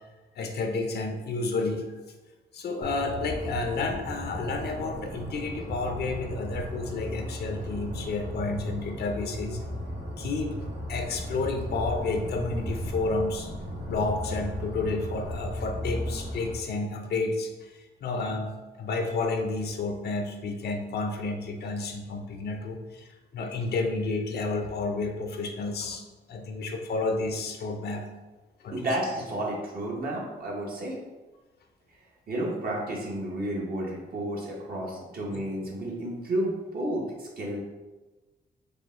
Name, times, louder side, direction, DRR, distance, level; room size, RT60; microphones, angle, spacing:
voice 1, 0.4-1.9 2.5-9.7 10.2-10.6 10.9-13.5 13.9-28.1 28.6-28.8 35.3-35.4, left 3 dB, 65° left, 4 dB, 0.6 m, -31 dB
sound 1, 2.8-16.5, equal, 30° right, 1.1 m, -36 dB
voice 2, 28.7-30.9 32.3-37.6, right 1 dB, 55° right, -3 dB, 1.1 m, -31 dB
4.9 x 2.2 x 3.7 m, 1.2 s
cardioid pair, 100°, 18 cm